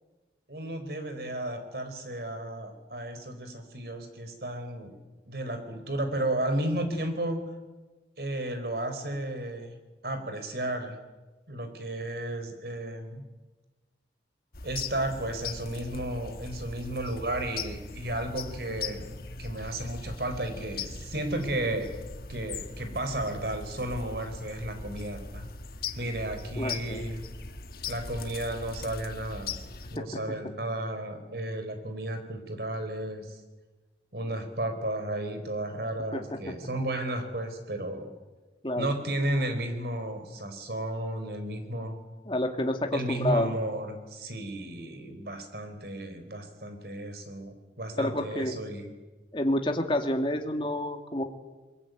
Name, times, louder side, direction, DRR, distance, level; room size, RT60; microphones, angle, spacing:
voice 1, 0.5-4.9 5.2-7.4 8.2-9.7 10.0-11.0 11.5-13.2 14.6-19.1 19.4-21.9 22.3-25.5 26.0-27.2 27.8-29.6 29.9-33.4 34.1-38.1 38.8-41.9 42.9-48.9, right 1 dB, 60° right, 8 dB, 4.5 m, -33 dB
sound 1, 14.5-30.0, left 4 dB, 55° left, 1.4 m, -40 dB
voice 2, 26.5-27.0 29.9-30.0 36.1-36.2 38.6-38.9 42.3-43.5 48.0-48.6 49.3-51.2, left 1 dB, 30° left, 4 dB, 2.3 m, -29 dB
23.0 x 22.5 x 9.4 m, 1.2 s
head